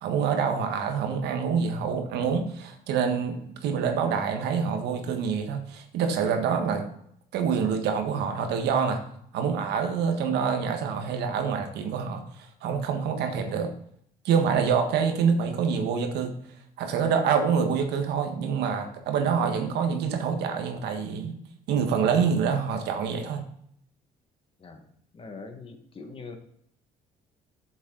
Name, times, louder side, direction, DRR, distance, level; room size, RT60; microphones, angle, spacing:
voice 1, 0.0-6.9 7.3-9.0 9.3-13.7 14.2-16.3 16.8-21.3 21.7-23.4, right 6 dB, 80° right, 6 dB, 1.5 m, -26 dB
voice 2, 25.1-26.4, left 4 dB, 35° left, 5 dB, 1.6 m, -42 dB
10.0 x 7.1 x 3.9 m, 0.68 s
cardioid pair, 110°, 17 cm